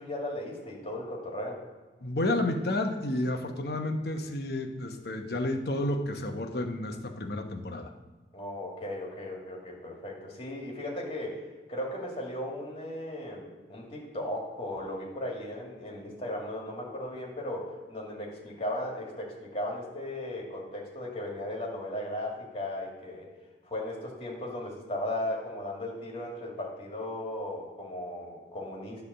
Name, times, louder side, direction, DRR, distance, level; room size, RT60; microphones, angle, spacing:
voice 1, 0.0-1.6 8.3-11.4 11.7-23.3 23.6-29.0, left 1 dB, 35° left, -2 dB, 2.0 m, -36 dB
voice 2, 2.0-7.9, left 1 dB, 60° left, 4 dB, 0.9 m, -31 dB
9.9 x 3.4 x 6.7 m, 1.3 s
head